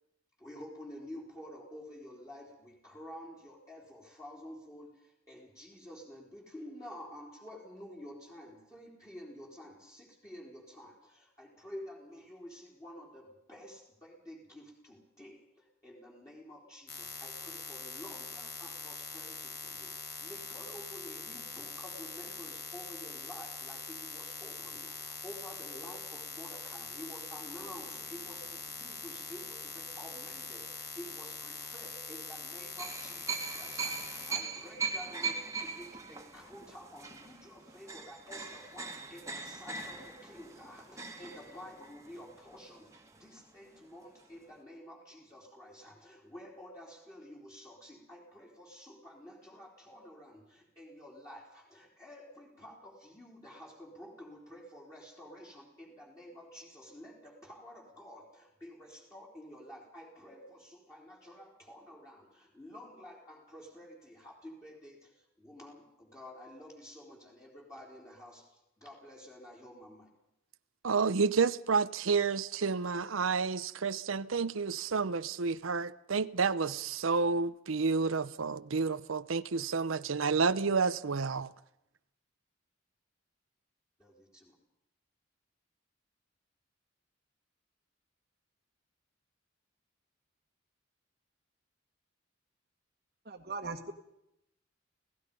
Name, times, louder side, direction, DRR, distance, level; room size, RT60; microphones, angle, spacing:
voice 1, 0.4-70.1 84.0-84.6, left 1 dB, 15° left, 3.8 m, -50 dB
sound 1, 16.9-34.3, left 5 dB, 55° left, 3.9 m, -43 dB
sound 2, 27.4-29.8 30.4-30.6 32.8-43.5 43.8-43.9 44.2-44.4, right 4 dB, 15° right, 1.9 m, -41 dB
voice 2, 70.8-81.5, right 5 dB, 90° right, 0.7 m, -30 dB
voice 3, 93.3-93.9, right 3 dB, 50° right, 1.6 m, -39 dB
28.5 x 17.5 x 5.4 m
head